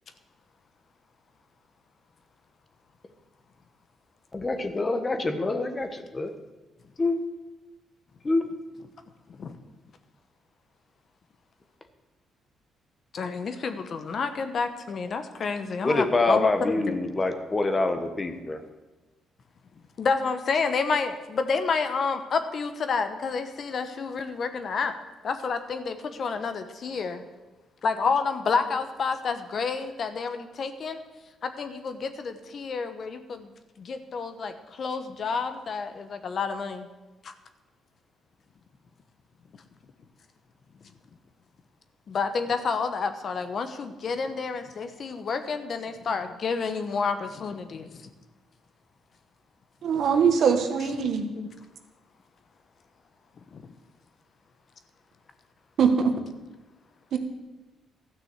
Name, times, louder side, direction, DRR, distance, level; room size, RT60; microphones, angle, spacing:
voice 1, 4.3-6.3 7.0-7.2 8.2-8.5 15.8-18.6, left 2 dB, 25° left, 7 dB, 1.3 m, -26 dB
voice 2, 13.1-16.9 20.0-24.9 25.2-27.3 27.8-31.0 31.4-33.5 33.8-36.9 37.2-37.3 42.1-48.1 51.0-51.1 51.3-51.5 53.5-53.6, left 5 dB, 50° left, 9 dB, 1.1 m, -29 dB
voice 3, 49.8-51.2 55.8-56.1 57.1-57.2, right 6 dB, 65° right, 6 dB, 1.4 m, -22 dB
13.0 x 6.2 x 8.0 m, 1.1 s
cardioid pair, 90°, 0 cm